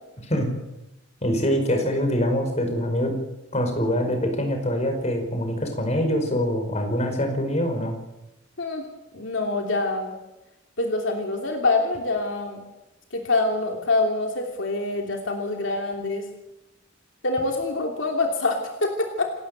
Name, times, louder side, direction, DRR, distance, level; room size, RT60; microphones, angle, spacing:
voice 1, 0.2-0.6 1.2-3.2 3.5-7.9, equal, 35° left, 5 dB, 5.1 m, -24 dB
voice 2, 9.1-10.1 10.8-12.6 13.1-16.3 17.2-19.3, left 2 dB, 70° left, 2 dB, 3.0 m, -25 dB
28.5 x 13.0 x 7.9 m, 0.98 s
head